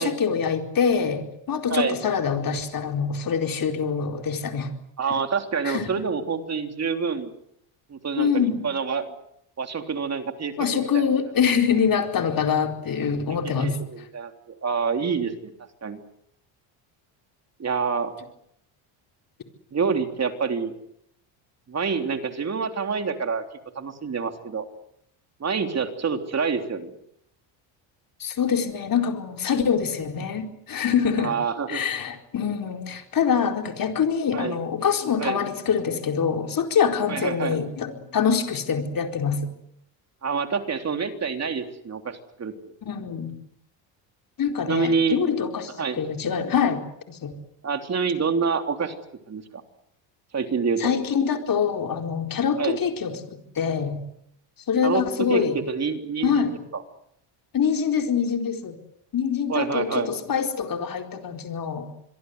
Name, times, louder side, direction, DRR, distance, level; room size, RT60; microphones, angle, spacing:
voice 1, 0.0-4.7 5.6-5.8 8.2-8.6 10.6-13.7 28.2-31.3 31.7-39.5 42.8-43.3 44.4-46.8 47.1-47.3 50.8-54.0 54.7-55.6 56.2-56.6 57.5-58.8 59.1-61.9, left 7 dB, 40° left, 4 dB, 4.5 m, -25 dB
voice 2, 5.0-7.3 7.9-9.1 9.6-11.0 13.6-14.3 14.6-15.5 15.8-16.0 17.6-18.1 19.7-20.7 21.7-23.4 23.8-24.7 25.4-26.9 31.2-31.8 34.3-34.6 35.2-35.4 37.1-37.6 40.2-42.5 44.7-45.2 45.8-46.0 47.6-48.9 49.3-49.6 50.3-50.9 52.6-52.8 54.8-55.0 55.3-56.5 56.7-56.8 59.5-60.1, right 5 dB, 30° right, 6 dB, 3.4 m, -27 dB
26.5 x 22.5 x 8.1 m, 0.75 s
cardioid pair, 115°, 49 cm